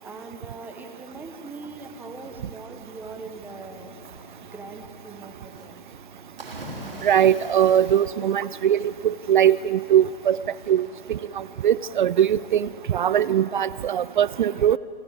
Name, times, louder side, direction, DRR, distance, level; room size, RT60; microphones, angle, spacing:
voice 1, 0.0-3.9 4.4-5.8, right 3 dB, 5° right, 5 dB, 1.3 m, -41 dB
Cricket / Waves surf, 1.5-12.7, right 1 dB, 75° right, 3.7 m, -46 dB
voice 2, 7.0-10.4 10.7-11.2 11.6-14.8, right 10 dB, 55° right, 19 dB, 0.4 m, -21 dB
29.5 x 11.5 x 7.9 m, 2.6 s
figure-of-eight pair, 120°, 29 cm